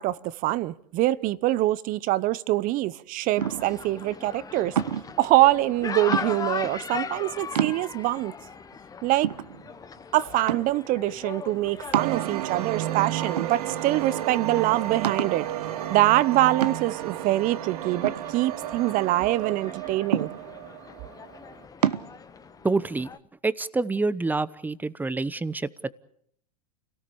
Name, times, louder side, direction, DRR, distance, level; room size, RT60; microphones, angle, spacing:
voice 1, 0.0-4.7 5.2-8.4 9.0-9.3 10.1-15.5 15.9-20.3, right 16 dB, 45° right, 1.0 m, -24 dB
sound 1, 3.4-23.2, left 5 dB, 20° left, 1.2 m, -39 dB
sound 2, 3.4-3.8 4.8-5.2 6.1-6.6 7.1-7.2 7.6-8.2 8.7-8.8 9.2-10.0 10.5-10.9 11.9-12.7 13.4-14.0 14.3-14.4 15.0-15.5 16.6-17.1 18.0-18.9 20.1-20.7 21.8-22.1, right 9 dB, 85° right, 1.1 m, -29 dB
sound 3, 11.9-21.6, right 13 dB, 70° right, 1.4 m, -33 dB
voice 2, 22.6-23.1 23.4-25.9, right 3 dB, 10° right, 0.9 m, -27 dB
29.5 x 18.0 x 7.1 m
hypercardioid pair, 105°, 20 cm